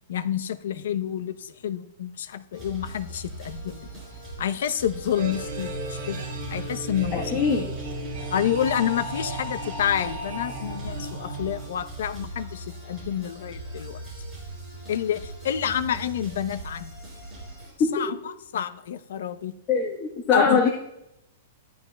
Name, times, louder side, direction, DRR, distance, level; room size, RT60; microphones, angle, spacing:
voice 1, 0.1-4.0 4.4-7.5 8.3-14.0 14.9-16.9 17.9-18.2 18.5-19.5 20.3-20.7, left 9 dB, 60° left, 12 dB, 0.7 m, -29 dB
sound 1, 2.5-17.7, right 2 dB, 10° right, 4.7 m, -40 dB
sound 2, 5.1-12.1, right 1 dB, 45° right, 4.2 m, -35 dB
voice 2, 7.1-7.7 17.8-17.9 19.7-20.7, left 5 dB, 20° left, -2 dB, 1.2 m, -22 dB
14.0 x 11.0 x 2.3 m, 0.81 s
hypercardioid pair, 180°, 0 cm